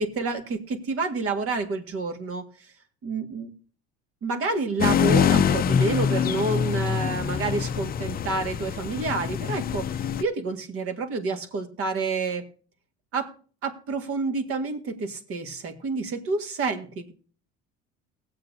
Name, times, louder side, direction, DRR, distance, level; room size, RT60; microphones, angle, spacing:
voice 1, 0.0-2.7 3.0-3.5 4.2-12.4 13.1-13.3 13.6-17.1, right 3 dB, 50° right, 7 dB, 1.8 m, -29 dB
sound 1, 4.8-10.2, left 8 dB, 30° left, 0.5 m, -24 dB
19.5 x 7.8 x 2.7 m, 0.40 s
cardioid pair, 120°, 30 cm